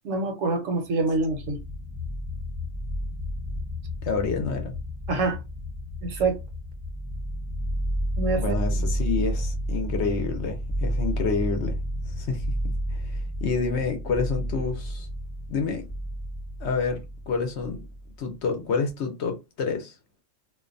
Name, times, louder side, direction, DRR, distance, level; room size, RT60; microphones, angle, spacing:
voice 1, 0.0-1.6 5.1-5.4 6.0-6.4 8.2-8.6, right 3 dB, 80° right, 1.1 m, -25 dB
sound 1, 1.2-18.3, equal, 15° left, 0.6 m, -31 dB
voice 2, 4.0-4.7 8.4-11.8 12.1-15.1 15.5-15.8 16.6-17.9 18.2-19.9, left 4 dB, 65° left, 0.9 m, -28 dB
2.5 x 2.1 x 2.5 m
omnidirectional pair, 1.3 m